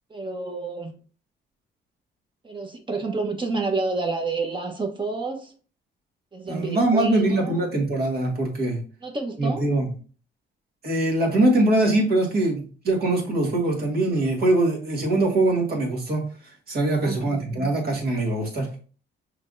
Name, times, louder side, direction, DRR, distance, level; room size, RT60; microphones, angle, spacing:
voice 1, 0.1-0.9 2.4-5.5 6.3-7.6 9.0-9.7 17.0-17.8, right 3 dB, 25° right, 3 dB, 1.2 m, -29 dB
voice 2, 6.5-8.8 9.4-9.9 10.8-16.3 16.7-18.7, right 2 dB, 50° right, -1 dB, 2.0 m, -22 dB
5.8 x 3.3 x 2.7 m, 0.39 s
cardioid pair, 90°, 20 cm